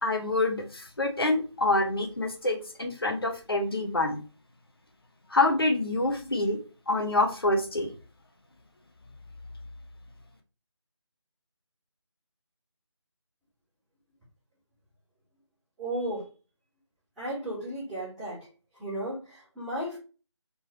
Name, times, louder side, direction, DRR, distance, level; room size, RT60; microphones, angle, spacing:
voice 1, 0.0-4.2 5.3-6.6 6.9-7.9, left 2 dB, 50° left, 4 dB, 1.1 m, -26 dB
voice 2, 15.8-16.3 17.2-18.4 18.8-20.0, right 1 dB, ahead, -21 dB, 0.6 m, -34 dB
4.4 x 4.0 x 2.9 m, 0.34 s
figure-of-eight pair, 160°, 16 cm